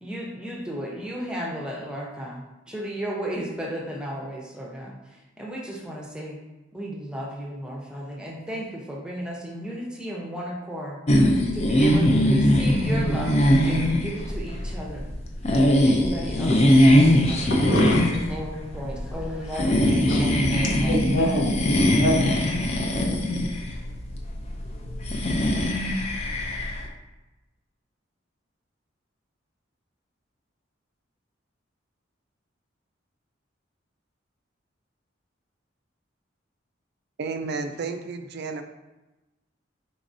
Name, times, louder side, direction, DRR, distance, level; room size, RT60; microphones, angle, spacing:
voice 1, 0.0-5.0 5.4-6.4 6.7-11.0 11.5-15.1 15.8-21.1, right 1 dB, 5° right, -2 dB, 0.7 m, -34 dB
sound 1, 11.1-26.9, equal, 35° left, 0.5 m, -21 dB
voice 2, 17.5-18.0 20.1-20.2 20.9-22.3, equal, 85° left, -2 dB, 1.1 m, -23 dB
voice 3, 37.2-38.6, right 4 dB, 60° right, 7 dB, 0.4 m, -31 dB
4.8 x 4.0 x 2.7 m, 1.1 s
head